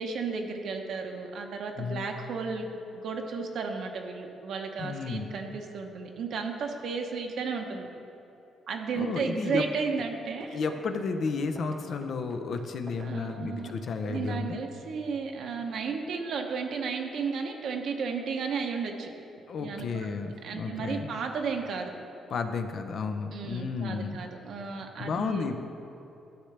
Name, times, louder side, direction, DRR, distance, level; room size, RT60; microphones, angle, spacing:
voice 1, 0.0-2.7 2.9-7.9 8.7-10.6 13.0-13.7 14.0-19.1 19.6-21.9 23.3-25.5, right 5 dB, 70° right, 3 dB, 0.9 m, -33 dB
voice 2, 1.8-2.1 4.8-5.3 9.0-9.7 10.5-14.6 19.5-21.1 22.3-24.2 25.0-25.6, left 4 dB, 60° left, 6 dB, 0.6 m, -32 dB
sound 1, 9.5-9.7 10.0-14.4, right 2 dB, 30° right, 0.8 m, -49 dB
12.0 x 6.5 x 3.3 m, 2.9 s
cardioid pair, 90°, 0 cm